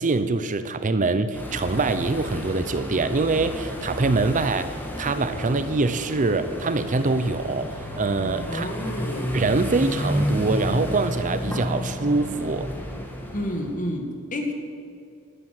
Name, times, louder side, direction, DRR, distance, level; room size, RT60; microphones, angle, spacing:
voice 1, 0.0-8.7 9.3-12.7, right 3 dB, 35° right, 11 dB, 0.6 m, -24 dB
sound 1, 1.3-13.8, equal, 10° left, 2.1 m, -31 dB
voice 2, 8.5-9.4 13.3-14.5, left 1 dB, 40° left, 4 dB, 2.0 m, -30 dB
12.0 x 11.5 x 7.8 m, 2.4 s
head